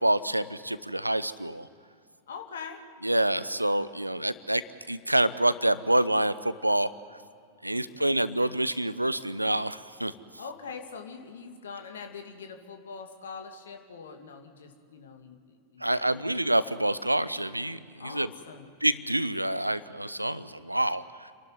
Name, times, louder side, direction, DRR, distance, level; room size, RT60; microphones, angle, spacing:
voice 1, 0.0-1.7 3.0-4.6 4.9-6.9 7.6-10.1 15.8-18.3 18.8-21.3, right 1 dB, 85° right, 17 dB, 0.7 m, -27 dB
voice 2, 2.3-2.8 7.7-8.2 10.4-16.2 18.0-18.7, left 5 dB, 65° left, 5 dB, 2.3 m, -43 dB
29.5 x 12.0 x 9.5 m, 2.3 s
figure-of-eight pair, 90°, 0 cm